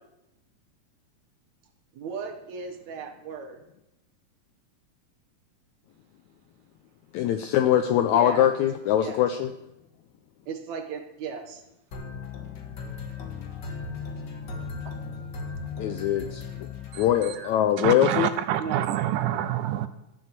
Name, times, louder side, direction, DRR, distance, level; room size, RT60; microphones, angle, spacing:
voice 1, 1.9-3.6 8.1-8.5 9.0-9.2 10.5-11.6 17.3-17.5 18.6-18.9, right 5 dB, 65° right, 4 dB, 2.1 m, -36 dB
voice 2, 7.1-9.5 15.8-16.7 17.0-18.3, left 11 dB, 85° left, 8 dB, 1.6 m, -22 dB
sound 1, 11.9-17.6, left 4 dB, 55° left, 1.2 m, -37 dB
voice 3, 17.8-19.9, right 12 dB, 80° right, 12 dB, 2.0 m, -27 dB
12.5 x 6.4 x 7.5 m, 0.90 s
omnidirectional pair, 3.9 m